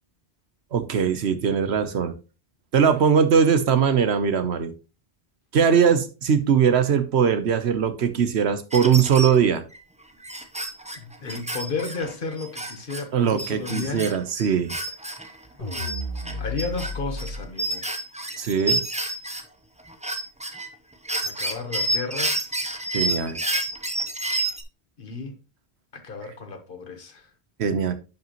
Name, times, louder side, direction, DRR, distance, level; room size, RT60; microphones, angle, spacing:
voice 1, 0.7-2.1 2.7-4.7 5.5-9.6 13.1-14.8 18.4-18.8 22.9-23.4 27.6-27.9, right 7 dB, 75° right, 1.1 m, -21 dB
sound 1, 8.7-9.4 9.7-9.8 10.2-13.0 13.4-15.3 15.7-19.4 19.8-20.7 21.0-24.6, right 1 dB, 10° right, 0.6 m, -29 dB
voice 2, 11.0-14.1 16.4-17.8 21.2-22.5 25.0-25.4 25.9-27.3, left 4 dB, 55° left, 1.2 m, -33 dB
sound 2, 15.6-17.4, left 2 dB, 35° left, 2.8 m, -32 dB
10.5 x 5.4 x 3.0 m
omnidirectional pair, 1.1 m